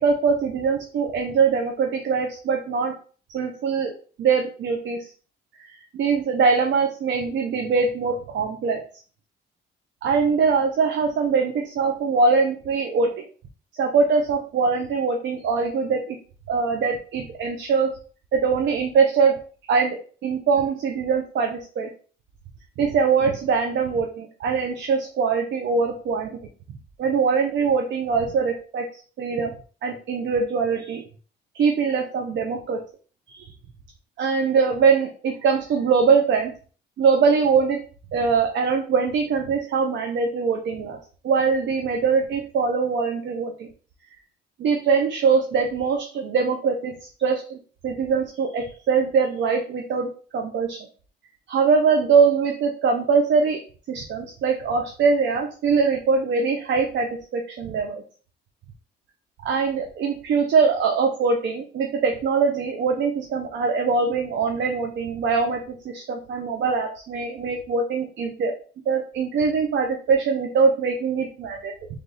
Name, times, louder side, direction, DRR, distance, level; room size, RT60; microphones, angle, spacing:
voice 1, 0.0-2.9 3.3-3.9 4.2-5.1 5.6-5.7 5.9-8.8 10.0-13.2 13.7-16.2 16.5-17.9 18.3-19.4 19.7-21.9 22.8-26.4 27.0-28.8 29.2-29.5 29.8-31.0 31.5-32.8 33.3-33.5 34.2-36.5 37.0-37.8 38.1-41.0 41.2-43.7 44.6-47.6 47.8-50.8 51.5-53.6 53.9-58.0 59.4-68.5 68.9-71.7, right 5 dB, 70° right, 3 dB, 0.7 m, -22 dB
3.4 x 3.3 x 3.9 m, 0.40 s
cardioid pair, 90°, 20 cm